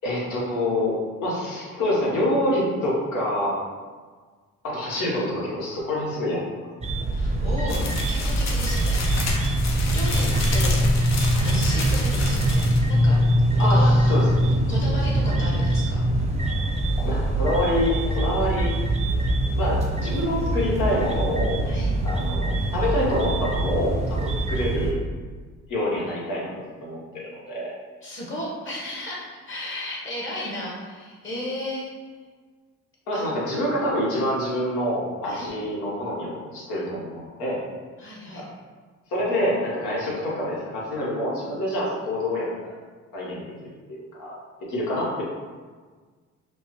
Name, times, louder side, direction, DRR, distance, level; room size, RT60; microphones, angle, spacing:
voice 1, 0.0-3.6 4.6-6.7 10.1-10.4 13.6-14.4 17.0-18.7 19.6-21.6 22.0-25.0 25.7-26.5 26.8-27.7 33.1-37.6 38.3-38.4 39.1-42.5 43.1-45.2, left 1 dB, 80° left, -5 dB, 1.3 m, -26 dB
sound 1, 6.8-24.9, right 1 dB, 20° right, 0.6 m, -23 dB
voice 2, 7.1-9.3 9.9-11.0 11.3-13.2 13.6-13.9 14.7-16.0 21.6-22.0 28.0-32.1 33.1-33.4 35.2-35.5 38.0-38.5, left 1 dB, 40° left, -4 dB, 1.4 m, -34 dB
sound 2, 7.7-12.9, left 2 dB, 60° left, 0.8 m, -28 dB
5.2 x 2.1 x 3.0 m, 1.5 s
cardioid pair, 90°, 30 cm